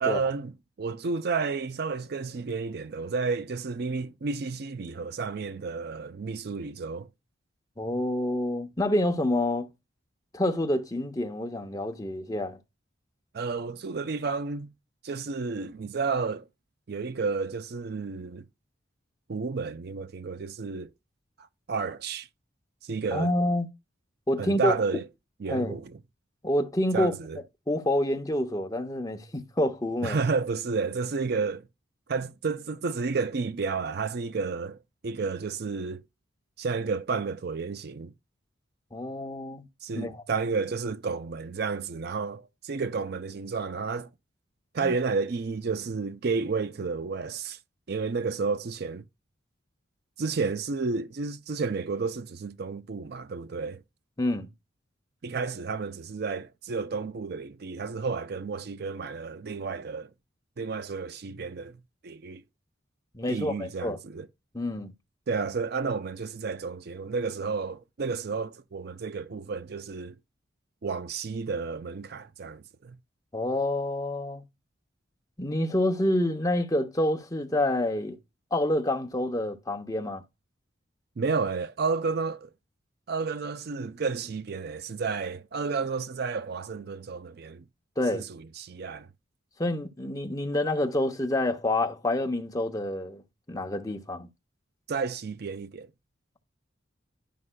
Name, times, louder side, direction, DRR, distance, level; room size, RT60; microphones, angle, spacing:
voice 1, 0.0-7.1 13.3-14.7 15.0-16.5 16.9-18.4 19.3-20.9 21.7-22.3 22.8-23.3 24.4-25.1 25.4-26.0 26.9-27.4 30.0-31.7 32.1-34.8 35.0-36.0 36.6-38.1 39.8-44.1 44.7-47.6 47.9-49.0 50.2-53.8 55.2-60.1 60.6-61.8 62.0-62.4 63.3-64.3 65.3-70.2 70.8-73.0 81.2-82.5 83.1-87.6 88.1-89.1 94.9-95.9, right 4 dB, 55° right, 0.5 m, -31 dB
voice 2, 7.8-9.7 10.3-12.6 23.1-23.7 24.3-24.7 25.5-25.8 26.4-27.1 27.7-30.2 38.9-39.6 39.9-40.2 44.8-44.9 54.2-54.5 63.1-64.0 64.5-64.9 73.3-74.4 75.4-78.2 78.5-80.2 88.0-88.3 89.6-93.2 93.5-94.3, left 1 dB, 20° left, 0.7 m, -27 dB
11.0 x 5.3 x 2.2 m
head